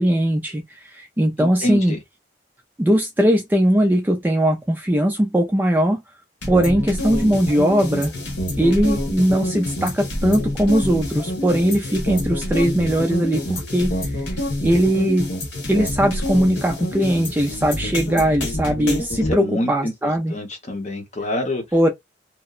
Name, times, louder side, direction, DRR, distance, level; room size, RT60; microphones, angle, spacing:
voice 1, 0.0-2.0 2.8-6.0 6.5-8.1 8.6-13.9 14.6-15.3 15.7-20.3 21.7-21.9, equal, 10° right, 0.3 m, -19 dB
voice 2, 1.4-2.0 19.3-19.9 20.3-21.6, left 1 dB, 35° left, 0.7 m, -26 dB
sound 1, 6.4-19.3, left 1 dB, 70° left, 1.2 m, -27 dB
2.8 x 2.1 x 2.3 m
head